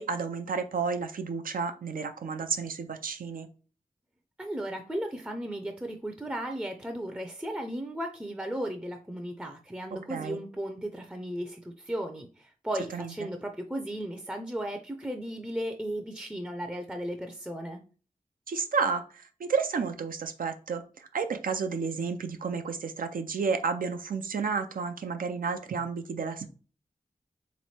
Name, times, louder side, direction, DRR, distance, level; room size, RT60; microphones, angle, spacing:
voice 1, 0.0-3.5 10.1-10.4 12.9-13.1 18.5-26.5, right 5 dB, 85° right, 7 dB, 0.5 m, -31 dB
voice 2, 4.4-17.8, right 1 dB, 5° right, 4 dB, 0.5 m, -35 dB
3.4 x 3.1 x 4.2 m, 0.38 s
wide cardioid pair, 105°, 14 cm